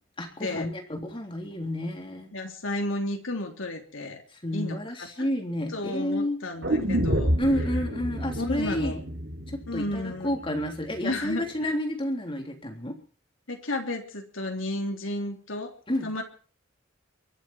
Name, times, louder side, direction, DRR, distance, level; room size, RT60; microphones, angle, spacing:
voice 1, 0.2-2.3 4.4-6.4 7.4-9.0 9.5-13.0 15.9-16.1, left 1 dB, 25° left, 3 dB, 3.6 m, -30 dB
voice 2, 2.3-4.2 4.5-4.8 5.7-7.4 8.4-9.0 9.7-10.4 11.0-11.7 13.5-15.7 16.0-16.2, left 1 dB, 90° left, 4 dB, 3.4 m, -32 dB
sound 1, 6.6-10.7 11.0-11.1, equal, 65° right, 3.8 m, -29 dB
23.5 x 7.9 x 7.2 m, 0.40 s
head